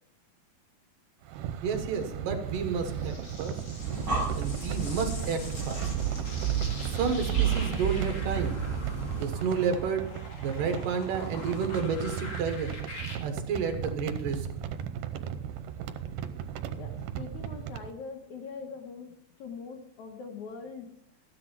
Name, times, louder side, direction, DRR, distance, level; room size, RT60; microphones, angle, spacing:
sound 1, 1.2-17.9, right 9 dB, 85° right, 2.7 m, -37 dB
voice 1, 1.6-3.6 4.4-5.8 6.8-8.6 9.2-10.1 10.4-12.7 13.2-14.5, right 5 dB, 70° right, 6 dB, 2.8 m, -31 dB
sound 2, 2.5-13.2, left 2 dB, 35° left, 2.1 m, -45 dB
Breathing, 3.7-9.4, right 7 dB, 20° right, 4.1 m, -31 dB
voice 2, 16.7-19.1 19.4-20.9, left 5 dB, 70° left, 4 dB, 2.0 m, -42 dB
13.5 x 10.0 x 4.5 m, 0.69 s
omnidirectional pair, 4.2 m